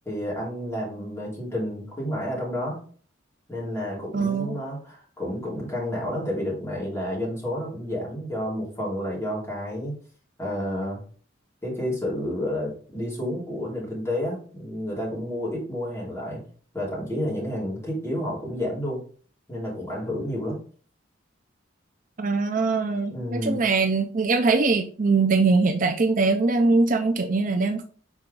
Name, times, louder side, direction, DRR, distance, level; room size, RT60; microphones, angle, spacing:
voice 1, 0.0-2.8 3.5-9.9 10.4-11.0 11.6-16.4 16.7-19.0 19.5-20.6 23.1-23.6, left 1 dB, 15° left, -5 dB, 2.8 m, -30 dB
voice 2, 4.1-4.6 22.2-27.8, right 3 dB, 45° right, 7 dB, 0.5 m, -22 dB
6.1 x 4.3 x 3.8 m, 0.44 s
head